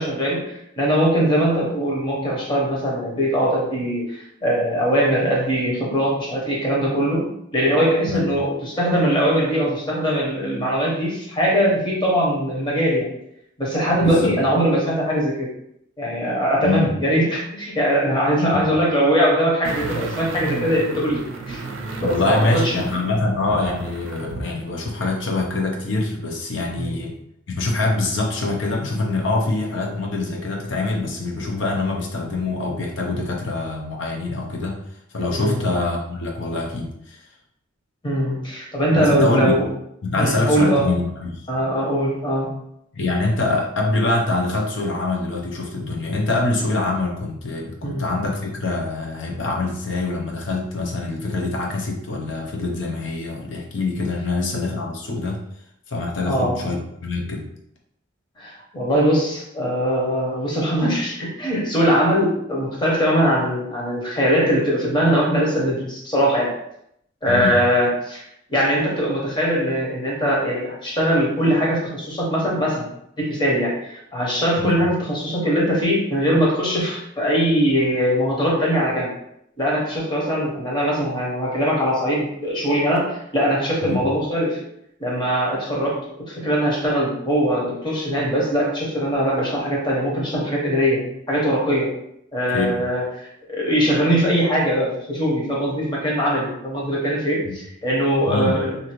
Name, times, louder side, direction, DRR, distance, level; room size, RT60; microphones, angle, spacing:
voice 1, 0.0-13.1 13.6-15.5 16.0-21.6 22.0-22.7 26.8-26.9 35.4-35.6 38.0-39.6 40.2-40.9 41.5-42.5 47.8-48.1 56.2-56.6 58.4-66.5 67.2-68.2 68.5-72.9 73.2-79.1 79.6-84.6 85.0-86.0 86.3-91.9 92.3-93.0 93.5-98.8, equal, 25° left, -4 dB, 0.9 m, -21 dB
voice 2, 14.0-14.3 16.6-16.9 18.5-18.7 22.0-27.1 27.5-34.8 35.1-37.2 38.9-39.5 40.0-41.5 42.9-55.4 55.9-57.5 67.3-67.6 74.6-74.8 83.8-84.0 92.5-92.8 97.4-97.6 98.3-98.6, left 2 dB, 65° left, -1 dB, 0.7 m, -24 dB
sound 1, 19.6-24.5 24.9-25.0, right 3 dB, 85° right, 0.4 m, -32 dB
2.7 x 2.5 x 3.0 m, 0.75 s
head